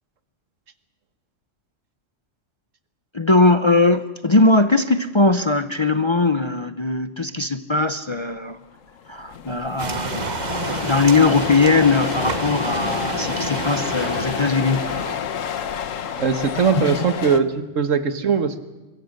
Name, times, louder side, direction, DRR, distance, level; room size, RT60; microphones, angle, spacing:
voice 1, 3.1-8.6 9.1-14.9 16.8-16.9, left 3 dB, 30° left, 10 dB, 0.6 m, -20 dB
sound 1, 8.6-8.7 8.9-17.4, left 8 dB, 85° left, 1.4 m, -29 dB
sound 2, 9.8-15.2, right 5 dB, 40° right, 1.1 m, -30 dB
voice 2, 16.2-18.6, right 6 dB, 80° right, 10 dB, 1.7 m, -20 dB
24.0 x 21.5 x 6.6 m, 1.2 s
omnidirectional pair, 1.3 m